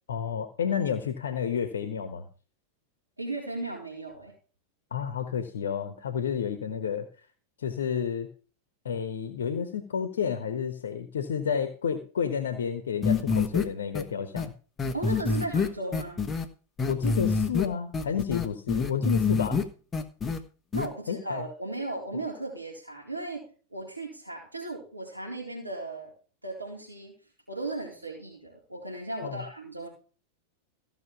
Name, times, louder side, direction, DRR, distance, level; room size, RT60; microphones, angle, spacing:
voice 1, 0.1-2.3 4.9-7.1 7.6-8.3 8.8-14.5 16.9-19.6 21.1-21.4 29.2-29.4, left 7 dB, 65° left, 9 dB, 1.2 m, -30 dB
voice 2, 3.2-4.3 14.9-16.2 20.7-23.5 23.7-26.1 26.4-27.1 27.5-29.9, right 2 dB, 85° right, -1 dB, 4.1 m, -36 dB
sound 1, 13.0-13.6 13.9-14.0 14.4-14.5 14.8-16.4 16.8-17.6 17.9-19.6 19.9-20.4 20.7-20.9, left 4 dB, 20° left, 1.3 m, -26 dB
15.5 x 6.2 x 5.9 m, 0.38 s
figure-of-eight pair, 90°, 0 cm